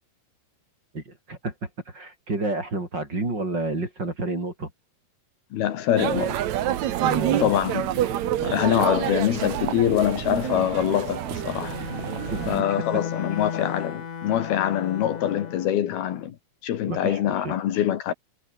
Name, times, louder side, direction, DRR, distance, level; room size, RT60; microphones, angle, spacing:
voice 1, 0.9-4.7 7.0-7.5 12.3-12.7 16.9-17.5, right 2 dB, 25° right, 5.6 m, -30 dB
voice 2, 5.5-6.4 7.4-7.9 8.4-11.8 12.5-16.4 16.6-18.1, left 11 dB, 75° left, 3.5 m, -24 dB
sound 1, 6.0-12.6, right 12 dB, 60° right, 2.0 m, -27 dB
Bowed string instrument, 11.3-15.8, left 7 dB, 45° left, 3.1 m, -35 dB
omnidirectional pair, 4.6 m